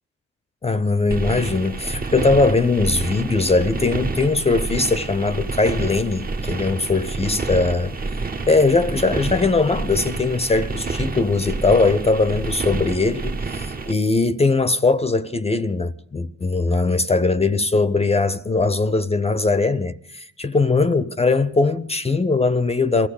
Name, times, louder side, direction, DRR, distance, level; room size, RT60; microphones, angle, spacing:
voice 1, 0.6-7.9 8.5-23.1, left 3 dB, 20° left, 0.7 m, -20 dB
sound 1, 1.1-13.9, right 3 dB, 30° right, 1.1 m, -28 dB
23.0 x 14.5 x 8.4 m
cardioid pair, 90°, 30 cm